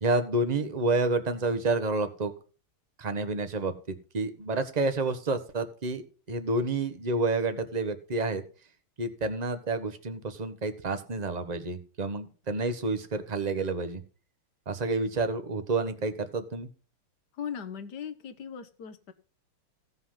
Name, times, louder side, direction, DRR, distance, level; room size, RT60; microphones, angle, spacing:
voice 1, 0.0-2.3 3.0-3.7 4.1-6.0 6.3-8.4 9.0-14.0 14.7-16.7, right 3 dB, 30° right, 9 dB, 0.9 m, -29 dB
voice 2, 17.4-19.1, left 8 dB, 55° left, 10 dB, 1.5 m, -38 dB
16.0 x 5.7 x 5.6 m, 0.37 s
omnidirectional pair, 2.3 m